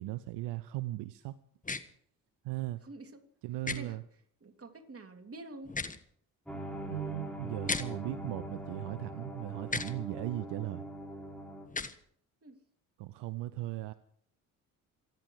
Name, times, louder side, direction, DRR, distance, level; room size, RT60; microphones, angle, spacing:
voice 1, 0.0-1.4 2.4-2.9 3.4-4.0 6.9-10.8 13.0-13.9, right 17 dB, 70° right, 0.8 m, -38 dB
sound 1, 1.6-1.8 3.6-3.8 5.6-6.0 7.6-7.9 9.7-9.9 11.7-11.9, left 3 dB, 20° left, 1.4 m, -34 dB
voice 2, 4.4-5.7 12.4-12.6, right 2 dB, 30° right, 3.2 m, -47 dB
sound 2, 6.5-11.7, right 1 dB, ahead, 6.1 m, -42 dB
27.5 x 10.5 x 4.9 m
hypercardioid pair, 50°, 43 cm